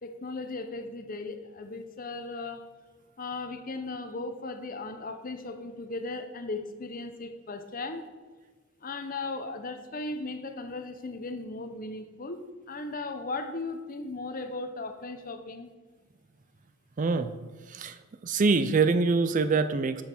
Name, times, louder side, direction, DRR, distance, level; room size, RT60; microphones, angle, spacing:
voice 1, 0.0-2.7 3.2-8.1 8.8-15.7, left 3 dB, 40° left, 8 dB, 0.8 m, -37 dB
voice 2, 17.0-17.3 17.7-18.0 18.2-20.0, right 4 dB, 35° right, 12 dB, 0.4 m, -24 dB
8.7 x 6.3 x 6.0 m, 1.4 s
head